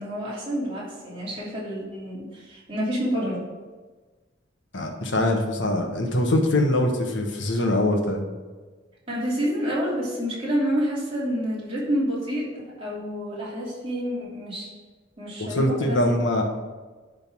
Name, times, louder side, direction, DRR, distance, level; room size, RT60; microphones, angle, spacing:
voice 1, 0.0-3.5 9.1-14.7 15.2-16.1, equal, 30° right, -6 dB, 2.8 m, -28 dB
voice 2, 4.7-8.3 15.4-16.4, left 1 dB, 75° left, 3 dB, 1.3 m, -23 dB
11.0 x 3.9 x 6.1 m, 1.3 s
head